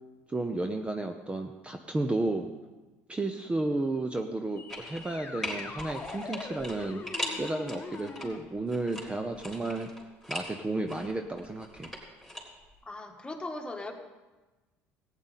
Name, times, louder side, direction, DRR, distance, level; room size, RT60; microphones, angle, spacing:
voice 1, 0.3-2.5 3.1-7.0 7.4-9.9 10.3-11.9, right 2 dB, 15° right, 5 dB, 0.8 m, -32 dB
sound 1, 4.6-8.4, left 5 dB, 35° left, 1.1 m, -42 dB
sound 2, 4.7-5.1 5.4-8.3 8.7-10.5 10.9-12.4 12.7-12.8, left 1 dB, ahead, 3.5 m, -39 dB
voice 2, 12.8-13.9, left 2 dB, 15° left, 3 dB, 1.6 m, -38 dB
14.5 x 9.0 x 4.2 m, 1.2 s
hypercardioid pair, 70°, 6 cm